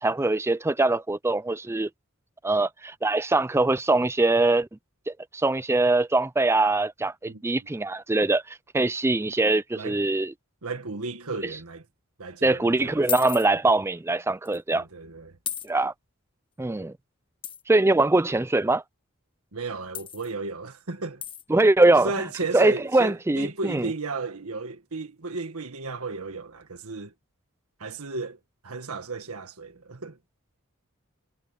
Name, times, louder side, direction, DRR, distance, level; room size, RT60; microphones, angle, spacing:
voice 1, 0.0-1.9 2.4-4.7 5.1-10.3 12.4-14.8 15.6-15.9 16.6-16.9 17.7-18.8 21.5-22.1 22.5-23.9, right 2 dB, 10° right, 0.4 m, -22 dB
voice 2, 7.2-7.7 9.7-10.0 10.6-11.8 12.2-13.2 14.7-15.4 19.5-21.2 22.0-27.1 27.8-30.2, right 3 dB, 80° right, 1.7 m, -34 dB
sound 1, 13.1-13.5 14.5-14.6 15.5-15.7 17.4-17.6 19.9-20.3 21.2-21.4, left 9 dB, 25° left, 1.1 m, -33 dB
head